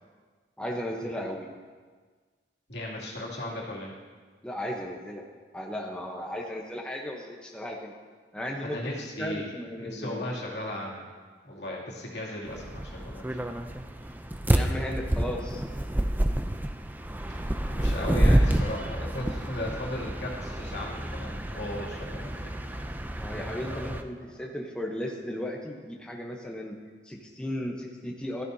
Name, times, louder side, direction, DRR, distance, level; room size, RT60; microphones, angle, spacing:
voice 1, 0.6-1.5 4.4-5.3 5.5-7.9 8.3-8.9 9.2-10.2 14.5-15.6 23.2-26.8 27.0-28.4, left 1 dB, 5° left, -1 dB, 0.9 m, -35 dB
voice 2, 2.7-3.9 8.6-9.4 9.8-11.1 11.4-13.4 17.3-22.7 23.7-23.8, left 1 dB, 75° left, -4 dB, 2.6 m, -36 dB
sound 1, 12.5-24.0, right 1 dB, 10° right, 0.5 m, -29 dB
13.5 x 13.5 x 2.8 m, 1.5 s
head